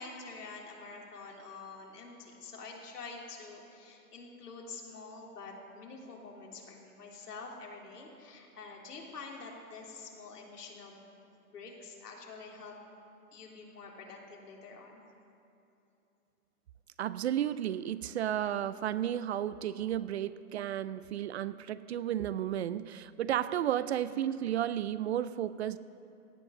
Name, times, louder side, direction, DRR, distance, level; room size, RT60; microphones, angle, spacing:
voice 1, 0.0-11.1 11.5-12.7 13.3-15.0 23.8-24.2, left 4 dB, 80° left, -1 dB, 3.5 m, -47 dB
voice 2, 17.0-25.8, right 11 dB, 45° right, 16 dB, 0.4 m, -33 dB
17.0 x 9.6 x 6.6 m, 2.8 s
hypercardioid pair, 135°, 46 cm